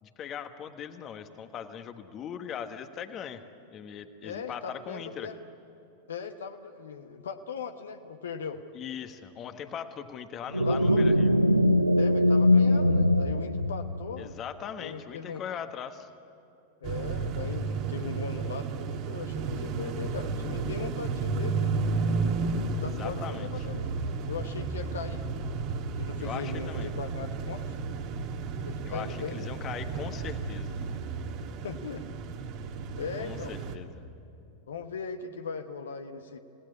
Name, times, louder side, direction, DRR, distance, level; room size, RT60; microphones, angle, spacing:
voice 1, 0.0-3.4 3.7-5.3 8.7-11.3 14.2-16.1 23.0-23.7 26.2-26.9 28.9-30.7 33.2-34.0, left 8 dB, 30° left, 9 dB, 1.3 m, -40 dB
voice 2, 4.2-5.4 6.1-8.6 10.7-11.1 12.0-14.3 14.8-15.4 16.8-21.8 22.7-23.9 24.3-25.2 25.9-27.8 28.6-29.5 31.6-32.2 33.0-33.6 34.7-36.4, left 6 dB, 65° left, 7 dB, 1.1 m, -39 dB
sound 1, 10.5-14.2, left 1 dB, 85° right, 0.7 m, -22 dB
sound 2, 16.8-33.8, right 4 dB, 40° right, 1.8 m, -32 dB
28.5 x 18.0 x 9.8 m, 2.8 s
figure-of-eight pair, 90°, 0 cm